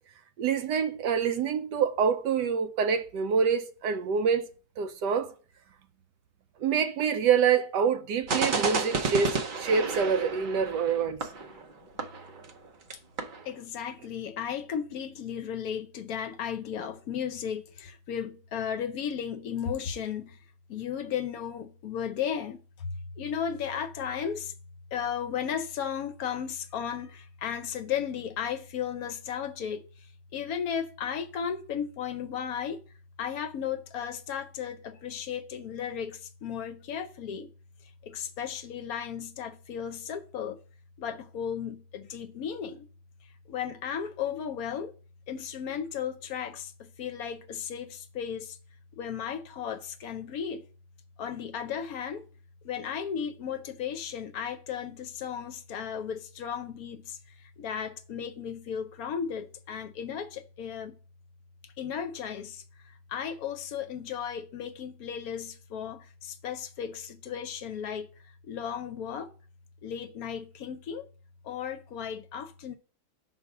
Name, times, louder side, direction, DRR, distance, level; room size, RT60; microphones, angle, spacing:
voice 1, 0.4-4.5 4.8-5.3 6.6-11.2, right 6 dB, 85° right, 1.3 m, -26 dB
sound 1, 8.3-12.7 12.9-13.0 13.2-13.4, right 4 dB, 50° right, 0.6 m, -31 dB
voice 2, 13.4-20.4 20.7-24.5 24.9-29.8 30.3-32.8 33.2-37.5 38.0-40.6 41.0-42.9 43.5-44.9 45.3-48.6 49.0-50.7 51.2-52.3 52.6-61.0 61.8-68.1 68.4-69.3 69.8-71.1 71.4-72.8, left 8 dB, 70° left, 1.0 m, -35 dB
5.7 x 4.0 x 5.9 m
omnidirectional pair, 1.8 m